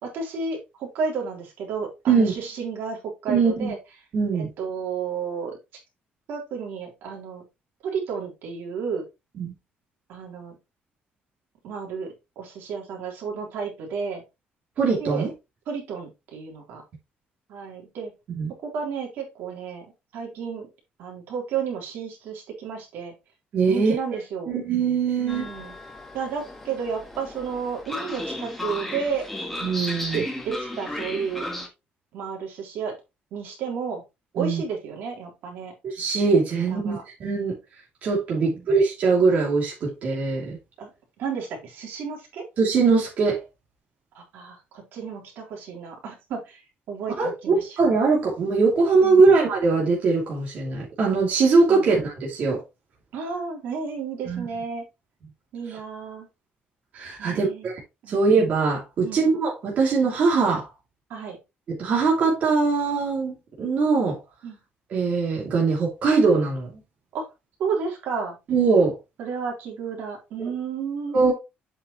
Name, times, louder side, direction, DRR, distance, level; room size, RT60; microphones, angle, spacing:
voice 1, 0.0-3.8 4.3-5.6 6.3-7.4 7.8-9.0 10.1-10.6 11.6-14.2 15.0-15.3 15.7-16.8 17.5-18.1 18.6-19.9 20.1-20.7 21.0-23.1 23.7-24.5 25.2-25.8 26.1-29.2 30.1-31.4 32.1-32.9 33.3-34.0 34.3-35.7 36.7-37.0 38.3-38.7 40.8-40.9 41.2-42.4 44.1-47.8 49.0-49.3 51.7-51.9 53.1-54.8 55.5-56.3 57.2-57.7 58.0-58.2 59.0-59.2 61.1-61.4 64.4-64.6 67.1-67.2 67.6-68.4 69.2-71.2, right 6 dB, 70° right, 3.5 m, -32 dB
voice 2, 3.3-3.7 4.1-4.5 9.4-9.5 14.8-15.3 18.3-18.5 23.5-24.0 24.5-25.5 29.6-30.2 34.4-34.6 35.8-37.5 38.0-40.6 42.6-43.4 47.2-52.6 54.3-54.5 56.9-57.8 58.1-60.7 61.8-64.2 64.9-66.7 68.5-69.0 70.4-70.5 71.1-71.3, right 4 dB, 45° right, 2.7 m, -21 dB
Train, 25.3-31.7, left 1 dB, 5° left, 1.5 m, -34 dB
8.1 x 5.8 x 3.0 m
cardioid pair, 175°, 4 cm